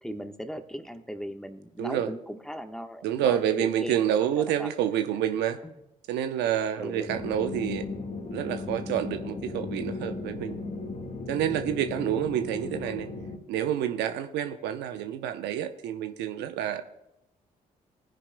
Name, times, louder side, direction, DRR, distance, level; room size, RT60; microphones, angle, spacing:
voice 1, 0.0-3.9 4.4-4.7 5.6-5.7 6.8-7.2, equal, 5° left, 7 dB, 1.2 m, -38 dB
voice 2, 1.8-2.1 3.0-5.6 6.1-7.9 8.3-10.6 11.3-13.1 13.5-16.8, right 10 dB, 75° right, 9 dB, 0.7 m, -28 dB
sound 1, 7.1-13.4, left 3 dB, 45° left, 1.7 m, -36 dB
19.0 x 10.0 x 2.2 m, 0.89 s
hypercardioid pair, 45°, 18 cm